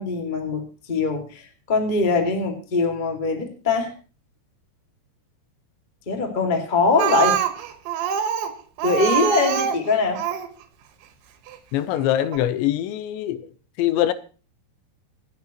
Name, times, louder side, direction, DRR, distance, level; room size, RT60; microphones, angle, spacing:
voice 1, 0.0-3.9 6.0-7.4 8.8-10.2, left 3 dB, 40° left, 0.6 m, -22 dB
Speech, 7.0-10.5 11.5-11.6 12.0-12.1 12.3-12.4, right 9 dB, 85° right, 3.7 m, -25 dB
voice 2, 11.7-13.5 13.8-14.1, left 12 dB, 90° left, 3.1 m, -23 dB
26.5 x 9.2 x 3.0 m
omnidirectional pair, 5.1 m